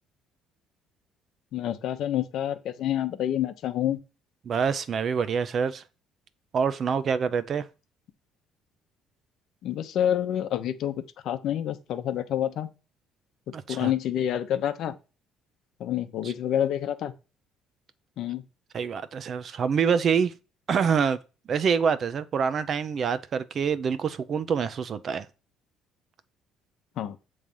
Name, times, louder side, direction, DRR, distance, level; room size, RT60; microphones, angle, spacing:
voice 1, 1.5-4.0 9.6-12.7 13.7-15.0 15.8-17.1 18.2-18.4 27.0-27.2, left 11 dB, 60° left, 0.8 m, -28 dB
voice 2, 4.5-5.8 6.5-7.7 13.5-13.9 16.2-16.3 18.7-20.3 20.7-21.2 21.5-25.3, right 6 dB, 40° right, 0.5 m, -26 dB
7.3 x 3.2 x 5.4 m
cardioid pair, 130°, 0 cm